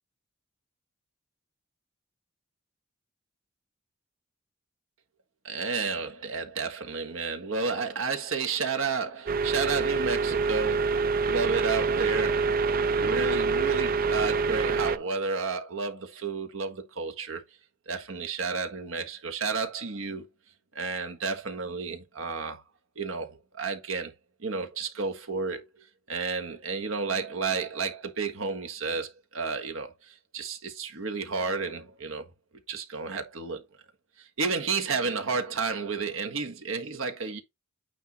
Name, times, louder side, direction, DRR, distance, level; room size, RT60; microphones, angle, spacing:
voice 1, 5.4-12.5 13.0-17.4 17.9-20.3 20.7-22.6 23.0-24.1 24.4-32.3 32.7-33.6 34.2-37.4, right 4 dB, 85° right, 1.5 m, -32 dB
sound 1, 9.3-15.0, right 4 dB, 45° right, 0.6 m, -26 dB
9.1 x 3.5 x 4.1 m
head